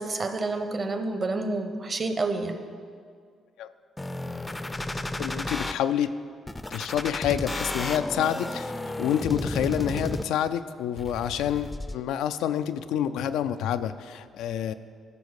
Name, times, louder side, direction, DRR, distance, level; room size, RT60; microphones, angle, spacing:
voice 1, 0.0-2.6, right 3 dB, 35° right, 8 dB, 0.8 m, -29 dB
sound 1, 4.0-5.7 6.5-10.5 11.0-12.0, left 1 dB, 15° left, 0.4 m, -33 dB
voice 2, 5.2-6.1 6.7-8.7 9.0-14.7, left 10 dB, 90° left, 11 dB, 0.3 m, -28 dB
12.0 x 4.4 x 6.4 m, 2.1 s
cardioid pair, 90°, 0 cm